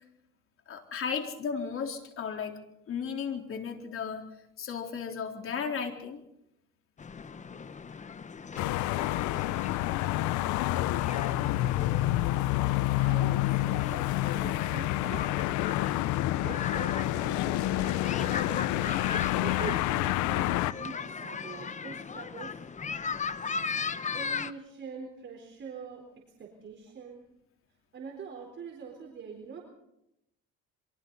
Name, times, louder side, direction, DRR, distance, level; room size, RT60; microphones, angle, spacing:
voice 1, 0.7-2.6 2.9-4.2 4.6-6.2, left 6 dB, 45° left, 3 dB, 3.9 m, -34 dB
sound 1, 7.0-24.5, left 5 dB, 25° left, 1.0 m, -38 dB
sound 2, 8.6-20.7, left 16 dB, 80° left, 0.8 m, -28 dB
voice 2, 13.0-15.3 16.4-22.6 24.1-26.0 26.4-27.2 27.9-29.6, right 5 dB, 40° right, 1 dB, 4.2 m, -44 dB
28.0 x 24.0 x 4.1 m, 0.82 s
cardioid pair, 115°, 29 cm